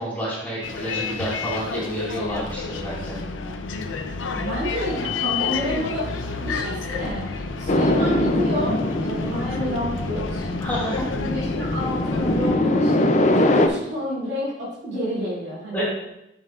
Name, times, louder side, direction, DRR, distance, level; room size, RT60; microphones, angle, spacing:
voice 1, 0.0-3.2 10.6-11.1 15.7-15.8, equal, 10° left, -8 dB, 3.1 m, -28 dB
Bus, 0.6-12.6, left 4 dB, 80° left, 0.6 m, -30 dB
voice 2, 4.3-10.5 11.2-15.8, equal, 55° right, -6 dB, 2.9 m, -29 dB
sound 1, 7.7-13.7, left 1 dB, 35° left, 0.5 m, -22 dB
10.5 x 6.3 x 2.5 m, 0.87 s
head